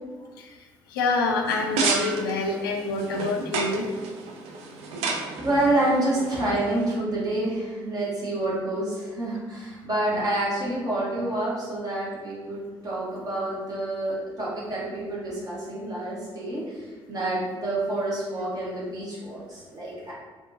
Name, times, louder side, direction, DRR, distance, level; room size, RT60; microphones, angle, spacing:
voice 1, 0.9-3.9 10.1-10.2, left 3 dB, 75° left, 2 dB, 0.4 m, -26 dB
sound 1, 1.4-6.9, right 4 dB, 60° right, 0.4 m, -31 dB
voice 2, 5.4-20.1, right 1 dB, 35° right, -7 dB, 1.2 m, -28 dB
2.8 x 2.5 x 2.5 m, 1.4 s
figure-of-eight pair, 45°, 12 cm